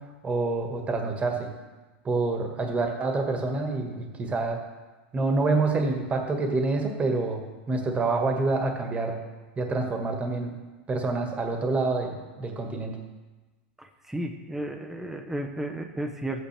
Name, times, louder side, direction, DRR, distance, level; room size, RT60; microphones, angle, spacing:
voice 1, 0.0-1.5 2.0-4.6 5.1-7.4 7.7-9.1 9.6-10.6 10.9-13.0, right 3 dB, 20° right, 2 dB, 1.8 m, -27 dB
voice 2, 13.8-16.5, right 1 dB, 5° right, 3 dB, 1.0 m, -33 dB
13.5 x 8.7 x 3.5 m, 1.2 s
hypercardioid pair, 115°, 7 cm